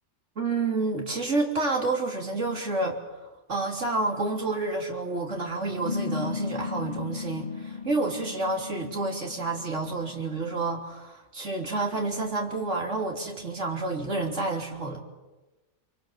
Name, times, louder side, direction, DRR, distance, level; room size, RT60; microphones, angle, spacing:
voice 1, 0.4-3.0 3.5-15.0, right 3 dB, 80° right, 2 dB, 3.6 m, -29 dB
sound 1, 5.8-10.8, left 5 dB, 40° left, 1.6 m, -36 dB
26.5 x 24.0 x 7.5 m, 1.1 s
omnidirectional pair, 1.2 m